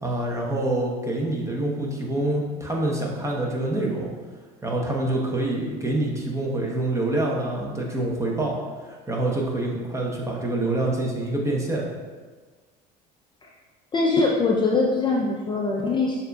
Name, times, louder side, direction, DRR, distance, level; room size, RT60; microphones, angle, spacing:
voice 1, 0.0-4.1 4.6-8.6 8.8-11.9, right 2 dB, 15° right, -2 dB, 0.9 m, -26 dB
voice 2, 13.9-16.2, left 3 dB, 25° left, -2 dB, 0.4 m, -22 dB
6.4 x 2.6 x 2.3 m, 1.4 s
supercardioid pair, 85°, 20 cm